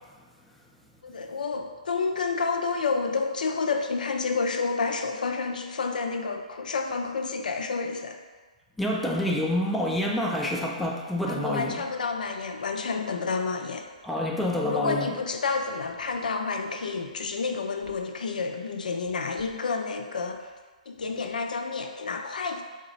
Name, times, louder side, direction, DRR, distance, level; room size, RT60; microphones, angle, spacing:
voice 1, 1.0-8.2 11.3-13.9 14.7-20.5 20.9-22.6, left 4 dB, 85° left, 5 dB, 0.4 m, -29 dB
voice 2, 8.8-11.8 14.0-15.1, left 1 dB, ahead, -2 dB, 0.3 m, -27 dB
3.8 x 2.0 x 3.8 m, 1.4 s
hypercardioid pair, 145°, 4 cm